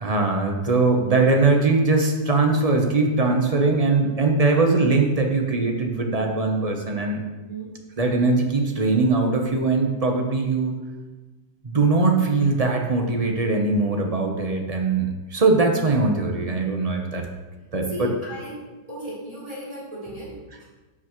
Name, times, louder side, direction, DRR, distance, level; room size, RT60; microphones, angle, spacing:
voice 1, 0.0-7.2 8.0-10.7 11.6-17.3 17.7-18.1, right 3 dB, 40° right, 2 dB, 0.5 m, -21 dB
voice 2, 7.3-7.7 17.9-18.6 18.9-20.6, left 1 dB, 15° right, -7 dB, 3.5 m, -35 dB
12.0 x 8.2 x 3.1 m, 1.2 s
omnidirectional pair, 2.1 m